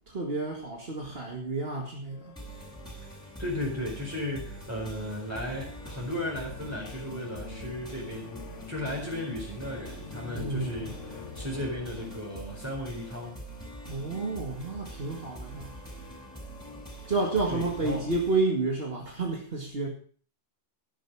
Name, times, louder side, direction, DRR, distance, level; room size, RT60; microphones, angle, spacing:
voice 1, 0.1-2.4 10.3-10.9 13.9-15.8 17.1-19.9, right 3 dB, 55° right, 1 dB, 2.1 m, -30 dB
sound 1, 2.1-12.2, left 5 dB, 80° left, 1.5 m, -47 dB
sound 2, 2.4-18.4, right 1 dB, 5° left, 6.7 m, -44 dB
voice 2, 3.4-11.0 11.3-13.4 17.5-18.0, left 1 dB, 15° right, -4 dB, 4.4 m, -35 dB
12.0 x 11.5 x 4.7 m, 0.44 s
omnidirectional pair, 1.2 m